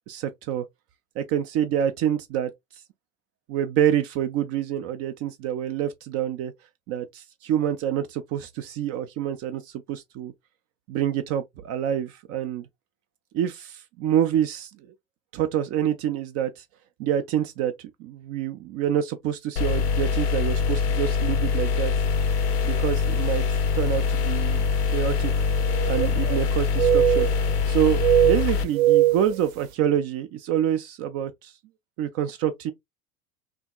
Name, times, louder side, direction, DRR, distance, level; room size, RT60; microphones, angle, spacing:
voice 1, 0.1-0.6 1.2-2.5 3.5-6.5 6.9-10.3 10.9-12.7 13.3-14.7 15.3-16.6 17.0-21.9 22.6-25.3 25.9-31.5 32.0-32.7, right 10 dB, 35° right, 0.4 m, -27 dB
sound 1, 19.6-28.6, left 5 dB, 75° left, 0.8 m, -24 dB
sound 2, 22.3-22.5 23.2-23.3 25.2-26.5 26.7-27.6 28.0-29.4, right 12 dB, 60° right, 0.8 m, -22 dB
3.4 x 2.8 x 2.2 m
hypercardioid pair, 85°, 46 cm